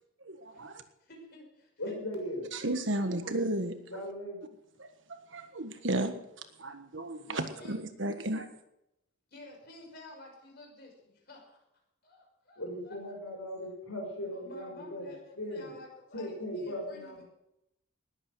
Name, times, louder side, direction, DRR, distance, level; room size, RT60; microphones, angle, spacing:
voice 1, 0.2-0.8 2.5-3.7 4.8-6.1 6.6-8.5, right 1 dB, 60° right, 8 dB, 1.5 m, -34 dB
voice 2, 1.1-2.0 7.3-7.8 9.3-11.6 12.0-13.2 14.3-17.2, left 2 dB, 50° left, 0 dB, 6.0 m, -51 dB
voice 3, 1.8-2.5 3.9-4.4 7.5-7.6 12.6-15.7 16.1-17.2, equal, 90° left, 1 dB, 6.3 m, -38 dB
20.0 x 8.8 x 6.3 m, 0.83 s
head